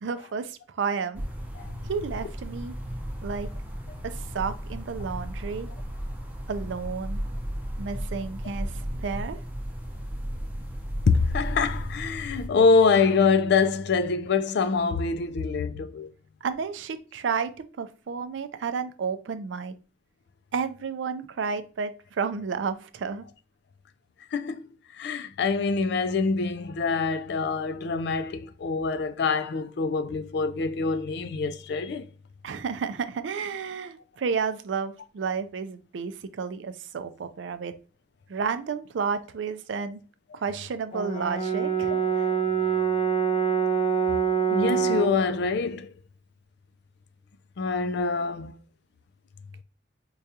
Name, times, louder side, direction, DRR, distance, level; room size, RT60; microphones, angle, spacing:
voice 1, 0.0-1.2 1.8-2.7 3.2-3.5 4.1-5.7 6.5-7.2 7.8-8.7 9.0-9.4 16.4-17.5 17.8-19.7 20.5-23.2 32.4-37.7 38.3-40.0 40.3-42.3, right 5 dB, 80° right, 0.4 m, -31 dB
sound 1, 1.1-12.5, equal, 10° right, 0.7 m, -34 dB
voice 2, 11.1-16.1 24.3-32.1 40.3-40.4 44.5-45.9 47.6-48.6, left 4 dB, 65° left, 0.4 m, -25 dB
Brass instrument, 40.9-45.2, right 7 dB, 30° left, 0.7 m, -25 dB
4.7 x 2.3 x 2.7 m
head